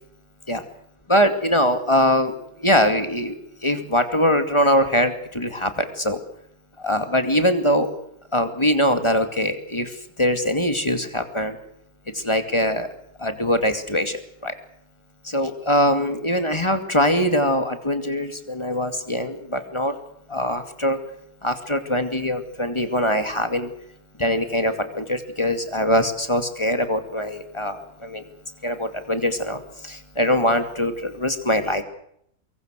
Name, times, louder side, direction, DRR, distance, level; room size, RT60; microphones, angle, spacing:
voice 1, 1.1-2.3 2.6-3.3 3.6-6.2 6.8-7.9 8.3-9.9 10.2-11.6 12.1-12.9 13.2-14.2 14.4-14.5 15.3-19.9 20.3-21.0 21.4-23.7 24.2-28.2 28.6-29.6 29.9-31.8, equal, 15° left, 8 dB, 2.3 m, -22 dB
24.0 x 23.0 x 6.5 m, 0.72 s
omnidirectional pair, 2.1 m